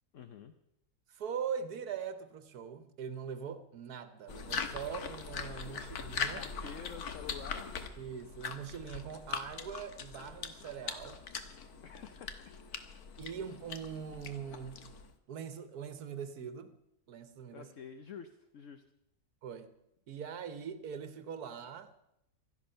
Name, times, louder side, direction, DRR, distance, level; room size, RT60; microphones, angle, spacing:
voice 1, 0.1-0.5 5.7-5.8 6.2-7.9 11.8-12.6 17.5-18.8, left 7 dB, 60° left, 1.1 m, -49 dB
voice 2, 1.1-6.4 8.0-11.2 13.2-14.9 15.3-16.7 17.1-17.7 19.4-19.7 20.1-21.9, right 7 dB, 85° right, 1.5 m, -42 dB
sound 1, 4.3-15.1, left 6 dB, 80° left, 1.7 m, -41 dB
17.0 x 13.5 x 5.6 m
omnidirectional pair, 1.6 m